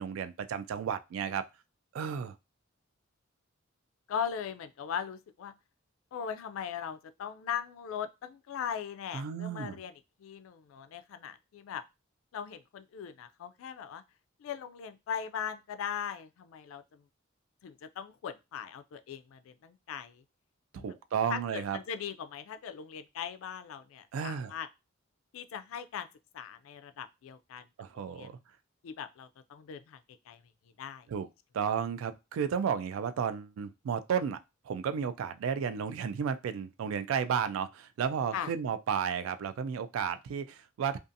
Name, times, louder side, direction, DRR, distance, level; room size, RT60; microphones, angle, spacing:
voice 1, 0.0-1.5 1.9-2.4 9.1-9.8 20.7-21.8 24.1-24.5 27.8-28.4 31.1-31.3 31.5-34.4 34.7-41.0, right 7 dB, 85° right, 0.3 m, -33 dB
voice 2, 4.1-5.5 6.1-9.9 10.2-11.8 12.3-14.0 14.4-17.0 17.6-20.2 20.7-20.9 21.3-24.7 25.3-26.1 26.3-27.6 28.1-28.3 28.8-30.0 30.3-30.4 30.8-31.1 38.3-38.5, left 8 dB, 85° left, 0.3 m, -39 dB
2.5 x 2.4 x 2.5 m
head